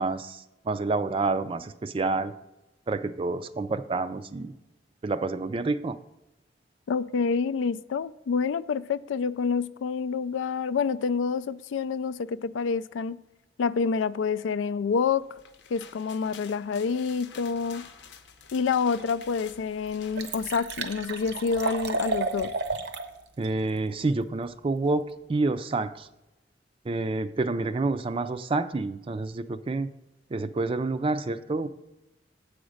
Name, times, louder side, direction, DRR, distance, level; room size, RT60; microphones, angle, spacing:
voice 1, 0.0-2.3 2.9-4.5 5.0-6.0 23.4-26.1 26.8-29.9 30.3-31.7, right 3 dB, 30° right, 0.4 m, -28 dB
voice 2, 6.9-13.2 13.6-15.2 15.7-17.8 18.5-22.5, left 5 dB, 85° left, 0.3 m, -27 dB
sound 1, 15.2-20.5, left 7 dB, 65° left, 0.7 m, -49 dB
Liquid, 19.0-19.1 19.6-19.7 19.9-23.1 23.4-23.5, right 3 dB, 60° right, 0.7 m, -32 dB
7.9 x 5.0 x 6.4 m
head